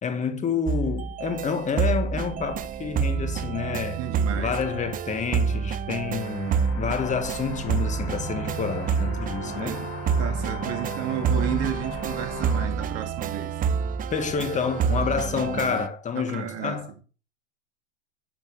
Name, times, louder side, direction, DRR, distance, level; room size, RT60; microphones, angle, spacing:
voice 1, 0.0-4.0 4.4-9.8 14.1-16.9, left 6 dB, 20° left, 1.8 m, -29 dB
sound 1, 0.7-15.9, right 6 dB, 25° right, 0.7 m, -28 dB
voice 2, 4.0-4.6 9.4-9.9 10.2-13.6 16.1-16.8, right 10 dB, 40° right, 2.4 m, -32 dB
sound 2, 6.2-12.7, left 6 dB, 50° left, 2.3 m, -38 dB
12.5 x 7.5 x 3.6 m
hypercardioid pair, 105°, 36 cm